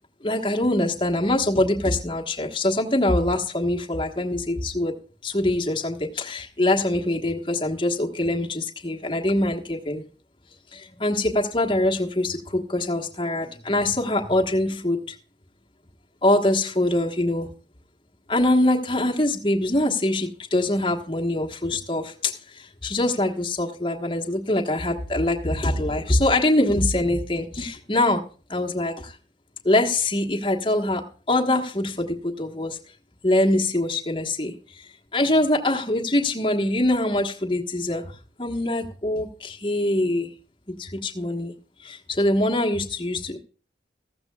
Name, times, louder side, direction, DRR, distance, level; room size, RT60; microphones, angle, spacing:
voice 1, 0.2-10.0 10.7-15.2 16.2-17.5 18.3-28.2 28.5-29.2 29.6-32.8 33.2-38.1 38.4-40.3 40.7-41.5 41.8-43.4, left 1 dB, 30° left, 1 dB, 1.3 m, -24 dB
15.0 x 14.0 x 2.4 m, 0.39 s
head